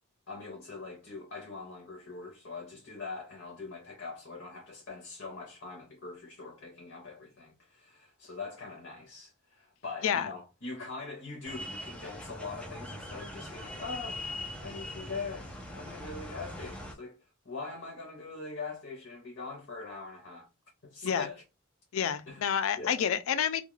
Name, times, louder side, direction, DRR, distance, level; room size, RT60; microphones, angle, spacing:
voice 1, 0.3-14.2 14.6-20.5 20.8-21.4 22.3-22.5 22.8-23.0, left 4 dB, 60° left, 0.7 m, -42 dB
sound 1, 11.4-16.9, left 1 dB, 5° left, 0.5 m, -41 dB
voice 2, 21.9-23.6, left 8 dB, 85° left, 0.4 m, -29 dB
2.3 x 2.2 x 3.0 m
head